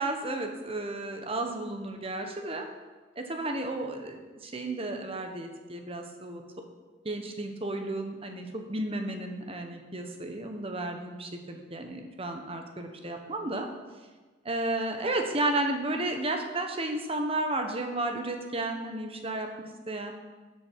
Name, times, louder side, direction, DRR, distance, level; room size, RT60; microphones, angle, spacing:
voice 1, 0.0-2.7 3.2-6.4 7.0-13.7 14.4-19.5 19.9-20.1, right 2 dB, 30° right, 4 dB, 1.3 m, -33 dB
12.5 x 8.3 x 4.7 m, 1.3 s
head